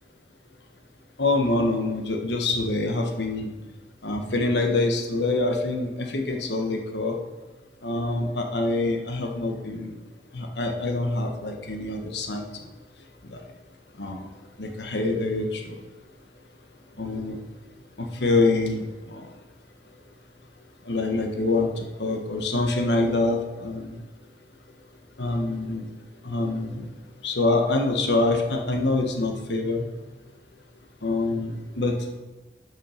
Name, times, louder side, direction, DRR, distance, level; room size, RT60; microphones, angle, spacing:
voice 1, 1.2-3.5 4.0-7.2 7.8-9.9 10.3-12.6 13.2-13.4 14.0-14.2 14.6-15.8 17.0-17.4 18.0-19.3 20.9-24.0 25.2-25.9 26.2-26.9 27.2-29.8 31.0-31.9, left 2 dB, 80° left, 3 dB, 1.3 m, -25 dB
12.5 x 5.5 x 5.1 m, 1.2 s
head